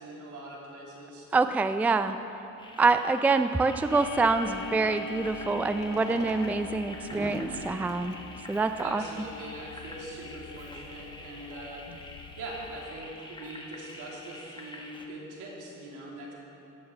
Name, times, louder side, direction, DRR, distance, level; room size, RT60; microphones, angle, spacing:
voice 1, 0.0-1.3 8.8-12.1 12.4-16.3, right 1 dB, 85° right, -3 dB, 2.8 m, -42 dB
voice 2, 1.3-2.2 2.8-8.1 8.5-9.0, right 3 dB, 5° right, 10 dB, 0.4 m, -26 dB
sound 1, 2.6-15.1, left 2 dB, 15° left, 1.2 m, -47 dB
Clock, 3.9-12.9, left 4 dB, 90° left, 0.9 m, -43 dB
Fireworks, 5.7-9.4 10.1-10.2 10.4-10.5 10.7-10.8 11.4-11.6, right 1 dB, 20° right, 1.8 m, -43 dB
17.0 x 12.0 x 3.2 m, 2.8 s
cardioid pair, 90°, 30 cm